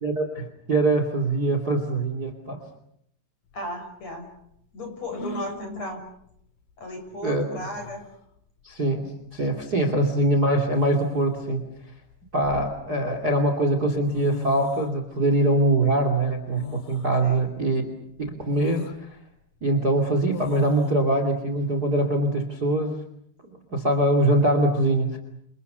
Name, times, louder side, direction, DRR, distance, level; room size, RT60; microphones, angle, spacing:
voice 1, 0.0-2.6 7.2-7.4 8.6-11.6 12.3-17.8 18.4-19.2 19.6-23.0 23.7-25.2, right 1 dB, 25° right, 6 dB, 2.7 m, -23 dB
sound 1, 3.5-3.6 5.1-5.6 7.1-7.2 7.6-8.1 9.4-9.6 10.7-11.5 12.1-13.1 13.8-13.9 14.1-14.9 16.6-17.2 17.7-17.8 18.5-19.0 20.3-20.9, left 1 dB, 60° left, 3.5 m, -37 dB
voice 2, 3.5-4.3 4.7-6.0 6.8-8.0 17.2-17.4, left 1 dB, 40° left, 4 dB, 7.5 m, -35 dB
29.5 x 27.0 x 6.9 m, 0.75 s
omnidirectional pair, 4.5 m